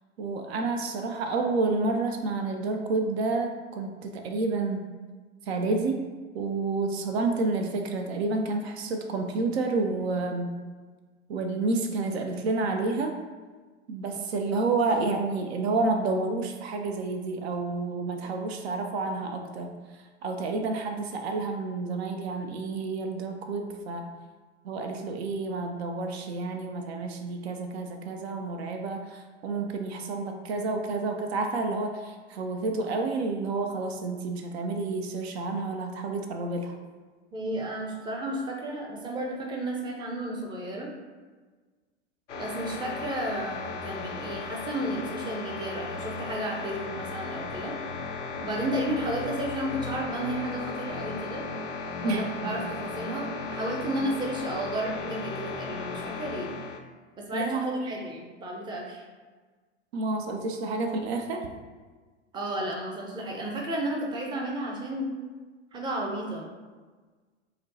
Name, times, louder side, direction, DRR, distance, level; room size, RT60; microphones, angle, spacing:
voice 1, 0.2-4.9 5.4-6.0 6.3-10.5 11.3-13.1 13.9-19.7 20.2-24.0 24.6-36.8 52.0-52.5 57.3-57.9 59.9-61.5, right 3 dB, 60° right, 4 dB, 0.5 m, -29 dB
voice 2, 37.3-40.9 42.3-47.7 48.4-51.4 52.0-56.5 57.2-59.0 62.3-65.1 65.7-66.5, right 1 dB, 15° right, -1 dB, 0.5 m, -33 dB
sound 1, 42.3-56.8, left 4 dB, 85° left, 0.5 m, -36 dB
5.0 x 2.1 x 2.7 m, 1.4 s
figure-of-eight pair, 90°, 36 cm